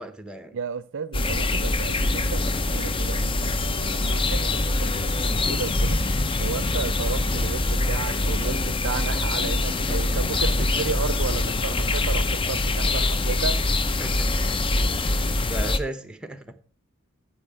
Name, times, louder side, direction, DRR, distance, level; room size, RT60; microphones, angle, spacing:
voice 1, 0.0-0.6 9.9-10.7 14.0-16.6, right 1 dB, 5° right, 0.9 m, -37 dB
voice 2, 0.5-6.0 6.4-13.6, right 5 dB, 60° right, 0.5 m, -33 dB
sound 1, 1.1-15.8, left 2 dB, 25° left, 0.6 m, -24 dB
9.6 x 8.2 x 4.7 m
head